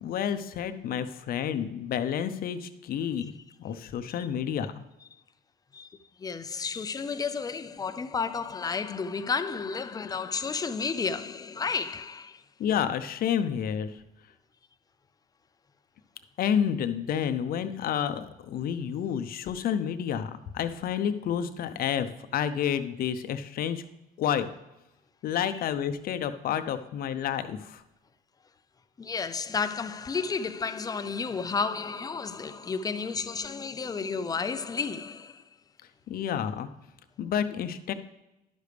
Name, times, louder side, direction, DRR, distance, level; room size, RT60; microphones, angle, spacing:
voice 1, 0.0-3.3 3.6-4.8 12.6-14.0 16.4-23.8 24.2-24.5 25.2-27.8 36.1-36.7 37.2-37.9, left 8 dB, 60° left, 0.7 m, -30 dB
voice 2, 5.7-12.4 29.0-35.4, left 5 dB, 20° left, 0.5 m, -32 dB
11.0 x 6.6 x 3.4 m
cardioid pair, 110°, 17 cm